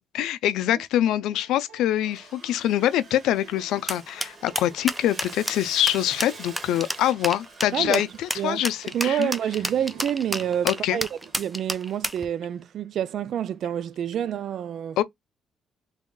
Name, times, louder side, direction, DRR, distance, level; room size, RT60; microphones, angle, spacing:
voice 1, 0.1-9.3 10.6-11.0 15.0-15.1, left 12 dB, 90° left, 0.5 m, -24 dB
sound 1, 1.0-12.2, right 5 dB, 85° right, 2.0 m, -54 dB
Sawing, 2.1-12.3, right 3 dB, 35° right, 1.7 m, -47 dB
sound 2, 3.9-12.3, equal, 5° right, 0.6 m, -30 dB
voice 2, 7.7-8.1 8.4-8.6 8.9-15.0, right 9 dB, 65° right, 0.3 m, -28 dB
3.6 x 2.3 x 3.7 m
cardioid pair, 90°, 0 cm